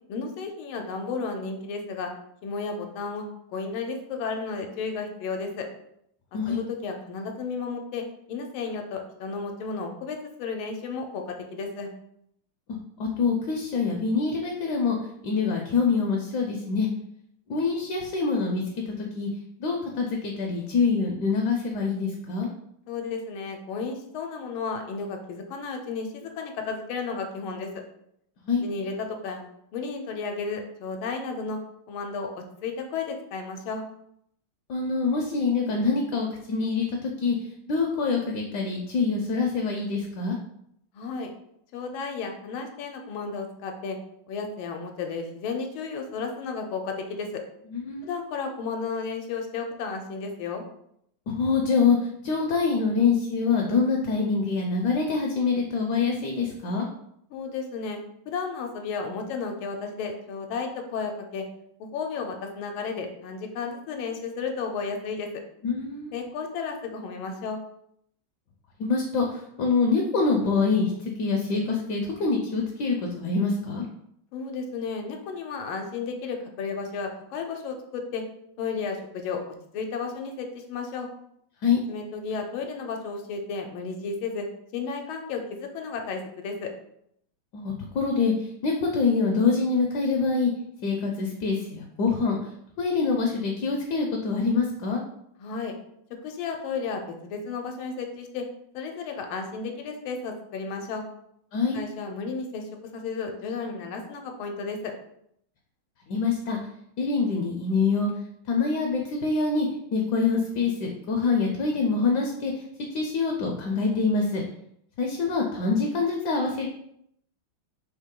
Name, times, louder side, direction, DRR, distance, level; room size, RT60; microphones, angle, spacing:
voice 1, 0.1-2.1 2.4-5.7 6.5-11.9 22.9-27.7 28.6-29.4 29.7-31.6 31.9-32.3 32.6-33.8 40.9-41.3 41.7-44.0 44.3-47.4 48.0-50.6 57.3-58.0 58.3-61.5 61.8-65.3 66.1-67.6 74.3-78.2 78.6-79.4 79.7-81.1 81.9-84.5 84.7-86.7 95.4-95.7 96.2-98.5 98.7-101.0 101.7-104.9, left 4 dB, 90° left, 4 dB, 1.5 m, -33 dB
voice 2, 13.0-15.0 15.2-16.9 17.5-19.3 19.6-22.5 28.5-28.6 34.7-37.4 37.7-40.4 47.7-48.2 51.3-52.0 52.2-56.9 65.6-66.1 68.8-73.8 81.6-81.8 87.5-90.5 90.8-92.4 92.8-95.0 101.5-101.8 106.1-106.6 107.0-108.1 108.5-112.6 112.9-114.4 115.0-116.7, left 4 dB, 70° left, 1 dB, 1.0 m, -25 dB
3.6 x 2.9 x 3.6 m, 0.74 s
omnidirectional pair, 2.2 m